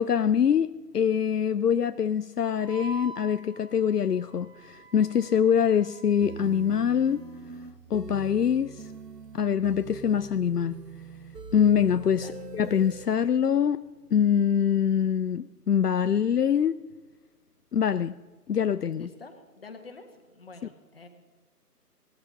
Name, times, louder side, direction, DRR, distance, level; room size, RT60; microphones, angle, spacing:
voice 1, 0.0-7.2 7.9-8.9 9.3-10.8 11.5-13.8 14.1-16.8 17.7-18.1 18.5-19.1, left 8 dB, 75° left, 0.5 m, -24 dB
Wind instrument woodwind instrument, 2.6-7.2, right 3 dB, 5° right, 4.0 m, -46 dB
sound 1, 6.2-13.1, right 4 dB, 75° right, 1.1 m, -42 dB
voice 2, 19.0-21.1, left 3 dB, 35° left, 1.6 m, -47 dB
18.0 x 13.5 x 3.8 m
figure-of-eight pair, 155°, 48 cm